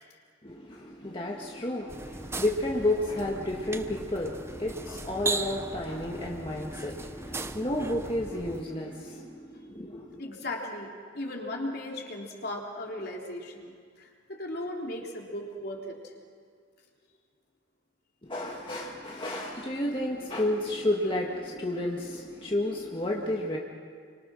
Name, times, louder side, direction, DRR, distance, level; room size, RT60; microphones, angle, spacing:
voice 1, 0.4-10.2 18.2-23.6, left 1 dB, 25° left, -1 dB, 1.8 m, -31 dB
sound 1, 1.9-8.6, right 3 dB, 15° right, 0.7 m, -38 dB
voice 2, 10.2-16.1, left 1 dB, 50° left, -1 dB, 3.6 m, -37 dB
29.5 x 25.0 x 6.4 m, 2.1 s
head